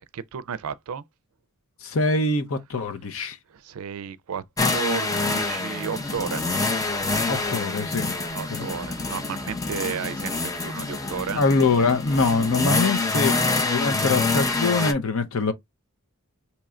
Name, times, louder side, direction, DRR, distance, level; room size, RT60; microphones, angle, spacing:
voice 1, 0.1-1.0 3.5-4.4 4.7-6.5 8.3-11.5, right 7 dB, 70° right, 0.4 m, -33 dB
voice 2, 1.8-3.4 7.3-8.1 8.5-8.7 11.3-13.4 13.6-15.5, left 3 dB, 65° left, 0.7 m, -23 dB
sound 1, 4.6-14.9, left 3 dB, 15° left, 0.5 m, -26 dB
2.9 x 2.4 x 4.2 m
head